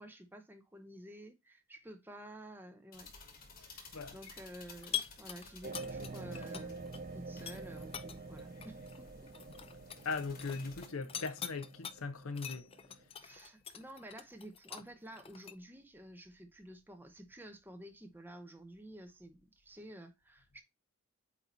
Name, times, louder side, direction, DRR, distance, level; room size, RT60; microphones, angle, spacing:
voice 1, 0.0-3.1 3.7-9.3 13.2-20.6, right 1 dB, 10° right, 0.8 m, -51 dB
sound 1, 2.9-10.9, left 3 dB, 40° left, 1.4 m, -56 dB
sound 2, 4.8-7.0 7.3-11.9 12.3-15.5, left 8 dB, 25° left, 0.4 m, -44 dB
sound 3, 5.6-13.0, right 3 dB, 40° right, 0.4 m, -47 dB
voice 2, 10.0-12.7, left 4 dB, 65° left, 0.7 m, -39 dB
8.3 x 2.9 x 3.9 m
head